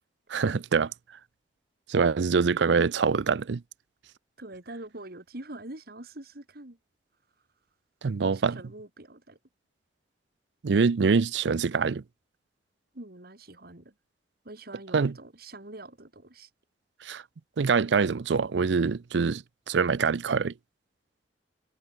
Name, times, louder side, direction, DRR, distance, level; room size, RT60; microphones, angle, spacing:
voice 1, 0.3-0.9 1.9-3.6 8.0-8.6 10.6-12.0 14.9-15.1 17.0-17.2 17.6-20.5, right 5 dB, 80° right, 0.5 m, -24 dB
voice 2, 4.4-6.8 8.2-9.4 12.9-13.9 14.4-16.5, right 2 dB, 60° right, 2.7 m, -44 dB
head